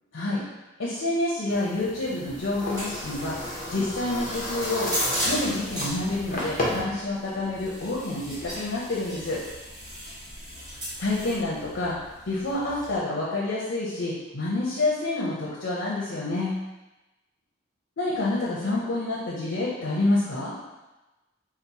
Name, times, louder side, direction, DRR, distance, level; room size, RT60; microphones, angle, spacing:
voice 1, 0.8-3.4 3.7-4.9 5.3-9.4 11.0-12.0 12.3-16.6 18.0-20.6, left 2 dB, 80° left, -6 dB, 0.6 m, -28 dB
sound 1, 1.5-6.8, left 1 dB, 45° left, 0.7 m, -33 dB
sound 2, 2.3-13.0, equal, 20° right, 0.7 m, -36 dB
2.9 x 2.0 x 4.0 m, 1.1 s
head